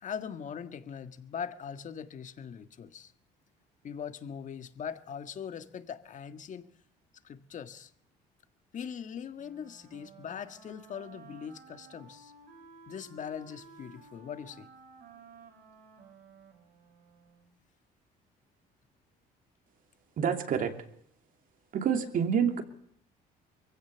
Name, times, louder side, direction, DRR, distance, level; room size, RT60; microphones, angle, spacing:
voice 1, 0.0-3.1 3.8-6.7 7.2-7.9 8.7-12.3 12.9-14.7, left 7 dB, 45° left, 10 dB, 1.7 m, -41 dB
Wind instrument woodwind instrument, 9.3-17.5, right 4 dB, 70° right, 5.6 m, -54 dB
voice 2, 20.2-20.7 21.7-22.6, right 7 dB, 55° right, 7 dB, 2.8 m, -27 dB
23.0 x 16.0 x 7.0 m, 0.68 s
cardioid pair, 110°, 17 cm